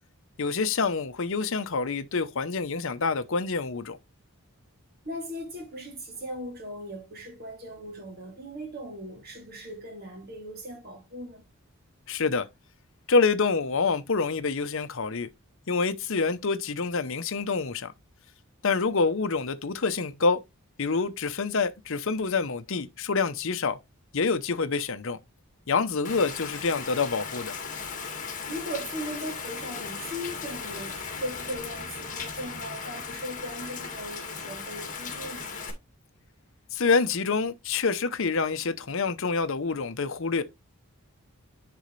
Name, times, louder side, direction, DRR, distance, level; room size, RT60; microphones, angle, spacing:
voice 1, 0.4-4.0 12.1-12.5 13.1-15.3 15.7-17.9 18.6-20.4 20.8-23.8 24.1-25.2 25.7-27.6 36.7-40.4, left 4 dB, 60° left, 0.7 m, -27 dB
voice 2, 5.0-11.4 28.5-35.5, equal, 45° right, 2.8 m, -38 dB
Rain, 26.0-35.7, left 5 dB, 35° left, 2.3 m, -37 dB
10.5 x 4.1 x 3.2 m
head